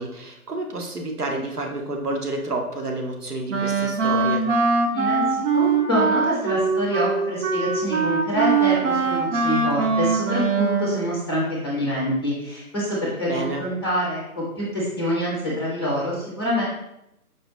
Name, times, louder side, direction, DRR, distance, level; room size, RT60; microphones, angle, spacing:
voice 1, 0.0-4.4 13.3-13.6, right 2 dB, 80° right, 2 dB, 0.9 m, -29 dB
Wind instrument woodwind instrument, 3.5-11.0, right 4 dB, 55° right, 0.6 m, -22 dB
voice 2, 4.9-16.6, equal, 15° left, -5 dB, 0.6 m, -26 dB
4.8 x 2.2 x 2.9 m, 0.84 s
figure-of-eight pair, 145°, 45 cm